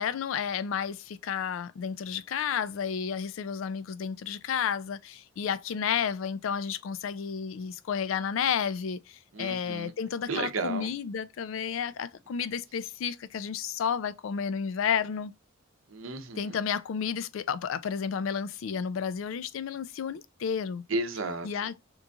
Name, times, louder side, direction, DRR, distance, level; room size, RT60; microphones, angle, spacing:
voice 1, 0.0-15.3 16.4-20.8 21.4-21.7, left 7 dB, 70° left, 0.4 m, -31 dB
voice 2, 9.3-9.9 10.3-10.9 15.9-16.6 20.9-21.7, right 3 dB, 80° right, 0.7 m, -33 dB
3.0 x 2.3 x 3.7 m
head